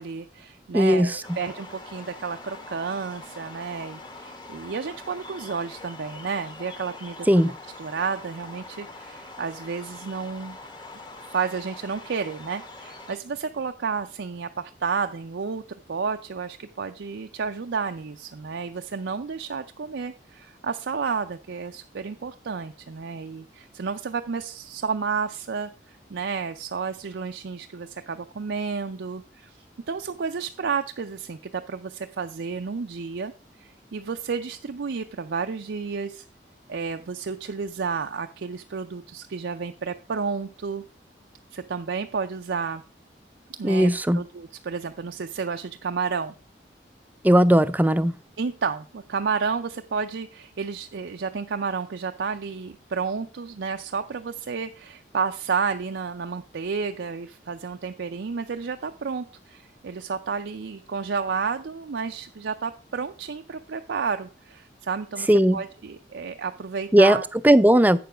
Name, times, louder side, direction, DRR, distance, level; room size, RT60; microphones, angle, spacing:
voice 1, 0.0-7.2 7.8-10.6 11.3-15.6 15.9-29.5 29.9-33.3 33.6-36.2 36.7-40.8 41.5-42.8 43.6-46.3 48.4-67.3, right 5 dB, 75° right, 7 dB, 0.5 m, -31 dB
voice 2, 0.7-1.2 7.3-7.5 43.6-44.2 47.2-48.1 65.3-65.6 66.9-67.2 67.4-68.0, right 1 dB, 10° right, 15 dB, 0.3 m, -17 dB
sound 1, 1.2-13.2, left 2 dB, 25° left, 1.1 m, -43 dB
8.4 x 6.9 x 4.9 m, 0.37 s
head